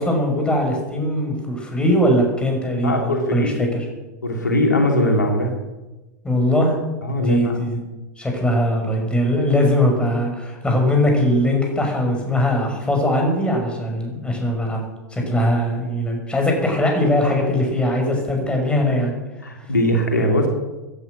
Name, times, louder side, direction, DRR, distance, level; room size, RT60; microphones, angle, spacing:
voice 1, 0.0-3.9 6.2-6.7 7.2-7.8 8.2-14.8 15.1-19.2, left 1 dB, 10° left, 2 dB, 6.0 m, -20 dB
voice 2, 2.8-3.7 4.2-5.5 7.0-7.5 15.2-15.3 19.4-20.5, left 1 dB, 90° left, 2 dB, 3.2 m, -20 dB
18.0 x 11.0 x 6.6 m, 1.1 s
hypercardioid pair, 95°, 9 cm